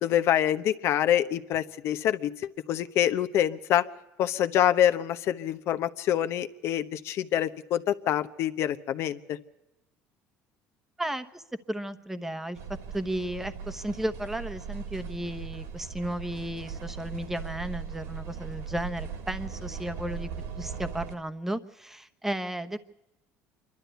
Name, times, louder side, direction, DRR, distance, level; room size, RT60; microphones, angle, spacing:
voice 1, 0.0-2.3 2.7-3.8 4.2-9.4, left 11 dB, 60° left, 10 dB, 0.9 m, -26 dB
voice 2, 11.0-12.6 12.9-20.3 20.6-22.8, right 1 dB, 5° right, 10 dB, 1.0 m, -34 dB
sound 1, 12.5-21.2, right 7 dB, 75° right, 2.6 m, -39 dB
26.5 x 12.0 x 8.1 m, 0.93 s
cardioid pair, 125°, 5 cm